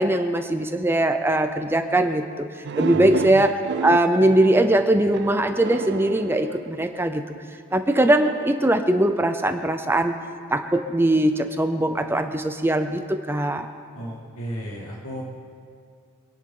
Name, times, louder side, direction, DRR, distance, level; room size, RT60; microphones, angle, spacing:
voice 1, 0.0-2.2 2.8-3.5 3.8-7.2 7.7-10.1 10.5-13.7, right 1 dB, 10° right, 7 dB, 0.6 m, -21 dB
sound 1, 2.6-7.2 8.0-9.5, right 5 dB, 50° right, 0.3 m, -32 dB
voice 2, 2.9-3.3 13.9-15.2, equal, 80° left, -3 dB, 2.2 m, -34 dB
25.5 x 10.5 x 3.8 m, 2.3 s
head